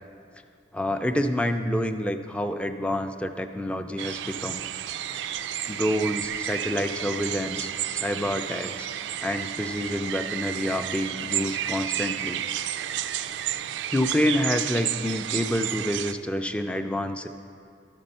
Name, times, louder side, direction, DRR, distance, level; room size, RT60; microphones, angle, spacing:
voice 1, 0.7-4.7 5.7-8.9 9.2-12.4 13.9-17.3, left 1 dB, 5° left, 7 dB, 0.3 m, -28 dB
sound 1, 4.0-16.1, right 11 dB, 85° right, 0.3 m, -31 dB
12.5 x 5.3 x 5.4 m, 2.3 s
head